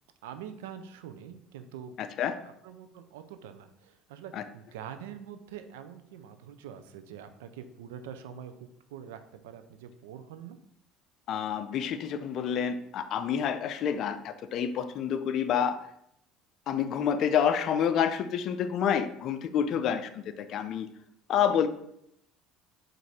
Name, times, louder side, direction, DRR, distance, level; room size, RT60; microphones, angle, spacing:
voice 1, 0.2-2.0 2.3-10.6 19.7-19.8, right 8 dB, 90° right, 9 dB, 0.4 m, -45 dB
voice 2, 2.0-2.4 4.3-4.4 11.3-15.8 16.7-20.9 21.3-21.7, left 8 dB, 55° left, 10 dB, 0.4 m, -28 dB
4.6 x 2.6 x 4.1 m, 0.75 s
supercardioid pair, 90°, 0 cm